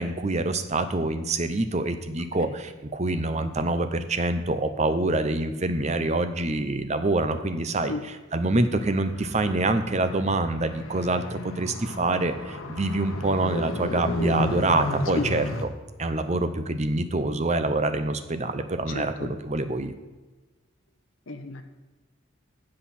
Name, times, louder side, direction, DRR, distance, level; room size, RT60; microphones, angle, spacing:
voice 1, 0.0-15.7 16.0-19.9, right 2 dB, 35° right, 9 dB, 0.7 m, -26 dB
Car, 8.8-15.6, left 1 dB, 85° left, 1.3 m, -33 dB
voice 2, 18.9-19.3 21.3-21.6, left 2 dB, 70° left, 6 dB, 1.0 m, -32 dB
12.5 x 7.9 x 4.3 m, 1.2 s
head